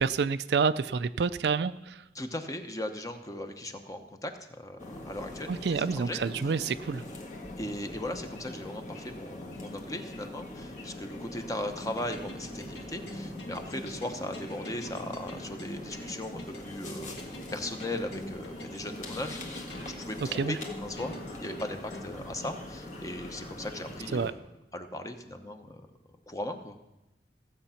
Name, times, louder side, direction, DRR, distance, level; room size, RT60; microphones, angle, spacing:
voice 1, 0.0-2.0 5.5-7.0 20.2-20.6 24.1-24.3, right 5 dB, 65° right, 13 dB, 0.4 m, -28 dB
voice 2, 2.1-6.5 7.6-24.4 24.7-25.8 26.3-26.8, left 1 dB, 20° left, 7 dB, 0.9 m, -38 dB
sound 1, 4.8-24.3, left 2 dB, 45° left, 1.6 m, -42 dB
sound 2, 11.8-22.0, equal, 65° left, 1.8 m, -45 dB
15.5 x 7.9 x 5.7 m, 0.94 s
head